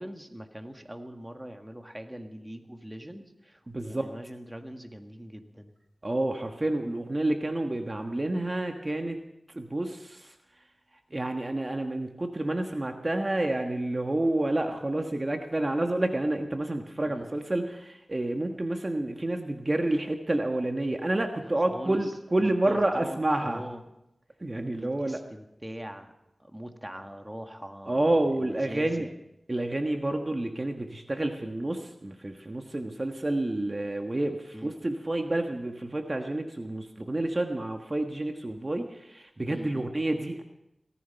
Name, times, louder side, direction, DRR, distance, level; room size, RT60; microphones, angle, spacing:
voice 1, 0.0-5.7 17.0-17.3 21.6-22.1 22.7-23.8 24.7-26.1 26.4-29.1 34.5-34.7 39.5-39.9, equal, 10° right, 5 dB, 1.7 m, -42 dB
voice 2, 3.7-4.1 6.0-9.2 9.5-10.3 11.1-23.6 24.4-25.2 27.9-29.1 29.5-40.4, right 1 dB, 35° right, 4 dB, 1.4 m, -29 dB
18.0 x 14.0 x 5.7 m, 0.86 s
wide cardioid pair, 55°, 0 cm